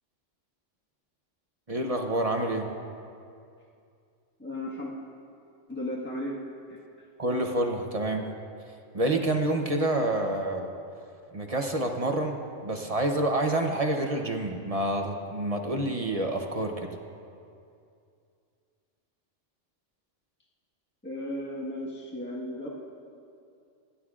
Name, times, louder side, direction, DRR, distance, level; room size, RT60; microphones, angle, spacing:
voice 1, 1.7-2.7 7.2-8.3 8.9-10.7 11.3-16.9, right 1 dB, 35° right, 2 dB, 0.8 m, -28 dB
voice 2, 4.4-4.9 5.7-6.4 6.7-6.8 21.0-22.7, left 1 dB, 10° left, -4 dB, 1.4 m, -35 dB
26.5 x 11.5 x 2.5 m, 2.5 s
omnidirectional pair, 1.3 m